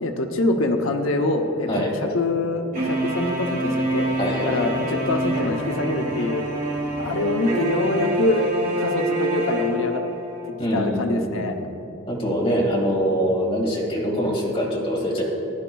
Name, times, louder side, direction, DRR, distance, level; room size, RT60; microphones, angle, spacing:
voice 1, 0.0-4.1 4.4-6.4 7.0-8.5 8.8-10.0 10.7-11.6, left 2 dB, 85° left, 5 dB, 0.7 m, -24 dB
sound 1, 2.7-10.5, right 1 dB, 40° right, 1.8 m, -26 dB
voice 2, 4.2-4.7 10.6-11.7 12.1-15.2, equal, 30° left, -3 dB, 2.0 m, -24 dB
15.0 x 11.5 x 2.3 m, 2.9 s
head